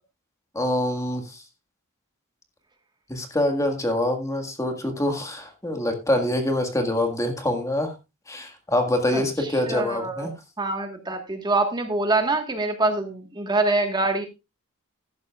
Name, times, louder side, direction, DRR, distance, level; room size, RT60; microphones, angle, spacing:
voice 1, 0.6-1.4 3.1-7.9 8.3-10.3, left 1 dB, 15° left, 5 dB, 1.7 m, -25 dB
voice 2, 9.7-10.3 10.6-14.3, right 2 dB, 20° right, 5 dB, 1.5 m, -24 dB
14.0 x 12.0 x 2.4 m, 0.25 s
head